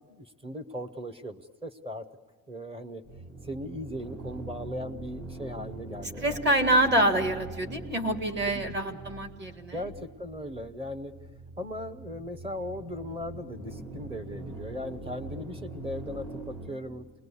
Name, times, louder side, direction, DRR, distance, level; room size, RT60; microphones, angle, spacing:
voice 1, 0.1-2.0 2.5-3.0 3.4-6.4 8.5-8.6 9.7-11.2 11.6-17.0, equal, 15° right, 11 dB, 0.8 m, -38 dB
sound 1, 3.0-16.7, right 2 dB, 65° right, 5.1 m, -43 dB
voice 2, 6.2-9.9, right 1 dB, 35° right, 6 dB, 1.8 m, -26 dB
28.0 x 20.5 x 8.3 m, 1.4 s
cardioid pair, 175°, 32 cm